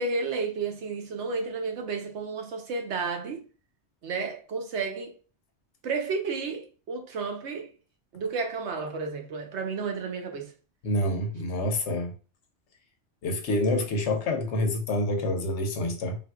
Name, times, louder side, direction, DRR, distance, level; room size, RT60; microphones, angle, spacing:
voice 1, 0.0-3.4 4.0-5.2 5.8-7.7 8.1-10.5, right 4 dB, 75° right, 1.0 m, -32 dB
voice 2, 10.8-12.1 13.2-16.2, left 1 dB, 80° left, 1.0 m, -27 dB
3.6 x 2.5 x 2.2 m
omnidirectional pair, 1.2 m